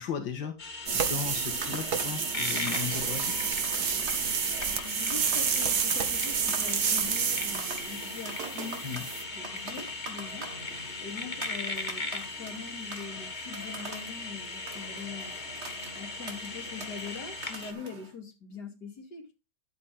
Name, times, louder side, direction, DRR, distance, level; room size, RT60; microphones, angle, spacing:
voice 1, 0.0-3.3 8.8-9.1, left 7 dB, 90° left, 2.2 m, -36 dB
sound 1, 0.6-17.7, left 3 dB, 25° left, 1.4 m, -38 dB
sound 2, 0.8-18.1, right 3 dB, 40° right, 2.2 m, -45 dB
sound 3, 0.9-9.2, right 7 dB, 60° right, 1.8 m, -30 dB
voice 2, 4.4-8.8 9.3-10.5 11.0-15.4 15.9-19.3, left 5 dB, 65° left, 3.1 m, -43 dB
11.0 x 8.5 x 3.7 m
omnidirectional pair, 1.9 m